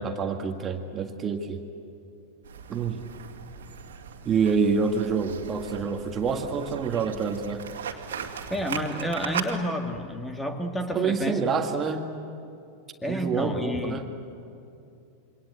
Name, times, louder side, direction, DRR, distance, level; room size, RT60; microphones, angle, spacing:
voice 1, 0.0-1.6 2.7-3.0 4.3-7.7 10.9-12.1 13.1-14.1, right 5 dB, 25° right, 5 dB, 1.8 m, -27 dB
sound 1, 2.4-9.5, right 7 dB, 65° right, 2.4 m, -38 dB
voice 2, 8.2-11.4 13.0-14.0, equal, 10° left, 5 dB, 2.2 m, -30 dB
27.5 x 25.0 x 8.2 m, 2.6 s
figure-of-eight pair, 90°, 0 cm